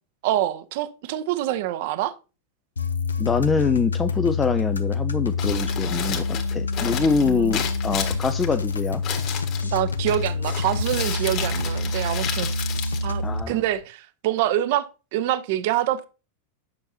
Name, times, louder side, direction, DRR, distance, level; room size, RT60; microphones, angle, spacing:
voice 1, 0.2-2.1 7.2-7.6 9.6-12.5 13.0-14.9 15.1-16.1, right 13 dB, 50° right, 0.6 m, -26 dB
sound 1, 2.8-13.4, left 3 dB, 75° left, 0.7 m, -27 dB
voice 2, 3.2-9.0 13.2-13.6, left 5 dB, 15° left, 0.4 m, -25 dB
Crumpling crinkling, 5.2-13.8, left 8 dB, 40° left, 1.6 m, -33 dB
9.6 x 6.5 x 2.8 m
figure-of-eight pair, 90°, 0 cm